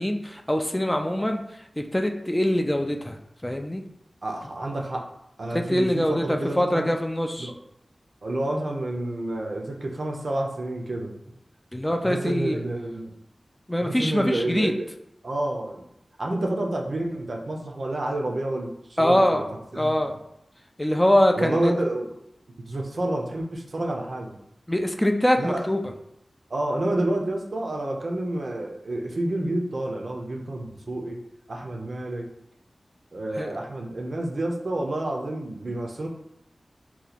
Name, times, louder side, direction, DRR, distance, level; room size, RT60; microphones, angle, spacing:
voice 1, 0.0-1.4 1.8-3.2 3.4-3.8 5.5-7.5 11.7-12.6 13.7-14.7 19.0-19.4 19.7-20.1 20.8-21.7 24.7-25.8 33.4-33.5, left 1 dB, 10° left, 4 dB, 0.3 m, -23 dB
voice 2, 4.2-5.1 5.4-6.9 7.4-7.5 8.2-11.1 12.0-13.1 13.8-14.9 15.2-15.8 16.2-19.4 19.7-20.0 21.4-22.1 22.7-24.4 25.4-25.7 26.5-31.2 31.5-32.3 33.1-36.1, right 1 dB, 60° right, 1 dB, 0.5 m, -29 dB
2.8 x 2.2 x 4.0 m, 0.79 s
wide cardioid pair, 80°, 0 cm